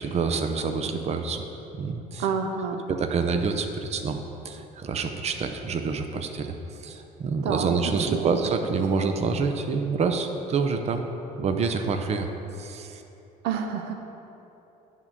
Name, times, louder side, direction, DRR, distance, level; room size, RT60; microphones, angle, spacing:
voice 1, 0.0-1.4 1.7-2.3 2.9-11.1 11.4-12.3 12.6-13.0, right 5 dB, 40° right, 6 dB, 0.6 m, -27 dB
voice 2, 2.2-2.8 7.4-8.3 13.4-13.9, right 6 dB, 85° right, 5 dB, 0.6 m, -29 dB
10.5 x 3.7 x 6.1 m, 3.0 s
cardioid pair, 110°, 17 cm